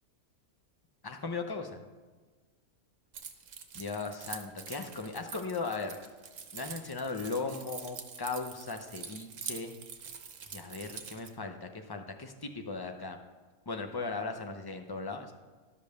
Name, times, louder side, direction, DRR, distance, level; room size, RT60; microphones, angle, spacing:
voice 1, 1.0-1.8 3.7-6.0 6.5-9.7 10.5-13.2 13.7-15.3, left 4 dB, 25° left, 5 dB, 0.5 m, -37 dB
Keys jangling, 3.1-11.3, right 7 dB, 60° right, 1.2 m, -45 dB
12.0 x 5.3 x 6.6 m, 1.4 s
omnidirectional pair, 1.5 m